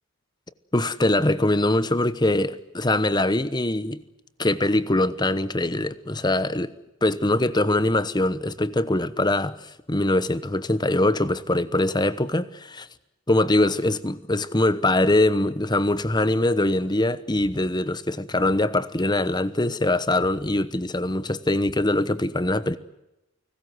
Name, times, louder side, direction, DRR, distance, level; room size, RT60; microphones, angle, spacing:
voice 1, 0.7-4.0 4.4-6.7 7.0-9.6 9.9-12.9 13.3-22.8, left 1 dB, 20° left, 1.0 m, -23 dB
29.5 x 19.5 x 7.9 m
head